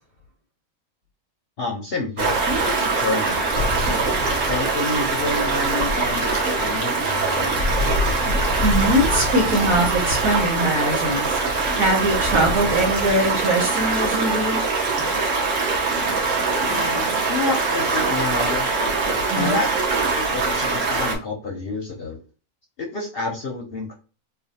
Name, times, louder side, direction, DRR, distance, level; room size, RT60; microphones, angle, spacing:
voice 1, 1.6-3.9 4.5-8.1 16.6-18.6 19.3-22.2 22.8-23.9, left 3 dB, 50° left, 0 dB, 0.7 m, -29 dB
Stream, 2.2-21.2, right 3 dB, 60° right, 1.3 m, -22 dB
voice 2, 8.6-14.6 19.3-19.6, right 1 dB, 80° right, -3 dB, 1.5 m, -22 dB
3.2 x 2.2 x 4.0 m, 0.35 s
omnidirectional pair, 1.5 m